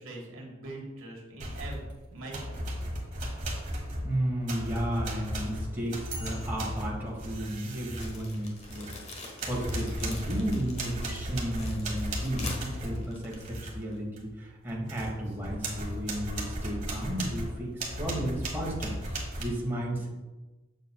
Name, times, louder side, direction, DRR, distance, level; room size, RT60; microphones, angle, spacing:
voice 1, 0.0-1.8 2.1-2.6, right 2 dB, 80° right, -1 dB, 1.4 m, -42 dB
sound 1, 1.4-1.9 2.3-9.1 9.4-13.8 14.2-14.3 14.7-19.4, right 1 dB, 40° right, 1.3 m, -36 dB
voice 2, 4.0-20.1, right 1 dB, 10° right, -4 dB, 1.4 m, -33 dB
sound 2, 7.9-14.0, left 2 dB, 35° left, 1.1 m, -44 dB
7.1 x 6.6 x 2.2 m, 1.2 s
head